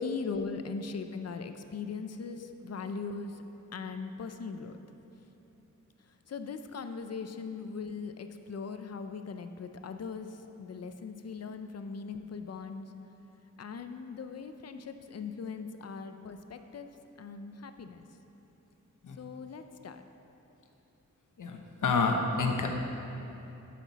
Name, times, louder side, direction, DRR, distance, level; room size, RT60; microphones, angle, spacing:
voice 1, 0.0-3.4 3.7-4.8 6.3-12.9 13.6-16.9 17.2-18.0 19.2-20.0, left 5 dB, 55° left, 8 dB, 0.5 m, -40 dB
voice 2, 21.4-22.7, left 4 dB, 80° left, 2 dB, 0.9 m, -29 dB
12.0 x 5.8 x 4.0 m, 3.0 s
wide cardioid pair, 145°, 31 cm